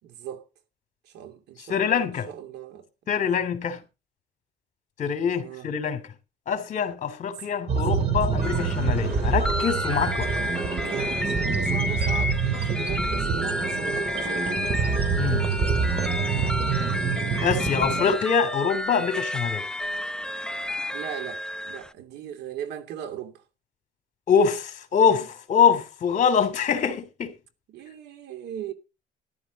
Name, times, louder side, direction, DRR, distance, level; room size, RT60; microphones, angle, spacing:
voice 1, 0.0-0.4 1.0-3.1 5.4-5.7 7.4-7.6 7.9-8.1 8.6-8.7 10.9-14.9 16.0-17.1 20.9-23.4 25.0-25.3 27.7-28.7, right 10 dB, 80° right, 2.9 m, -39 dB
voice 2, 1.7-2.3 3.1-3.8 5.0-6.0 6.5-10.3 15.2-15.5 17.4-19.6 24.3-27.3, left 7 dB, 45° left, 3.1 m, -24 dB
sound 1, 7.7-18.2, right 5 dB, 35° right, 3.2 m, -26 dB
sound 2, 8.4-21.9, left 1 dB, 5° left, 0.6 m, -31 dB
13.5 x 12.0 x 4.2 m
cardioid pair, 110°, 17 cm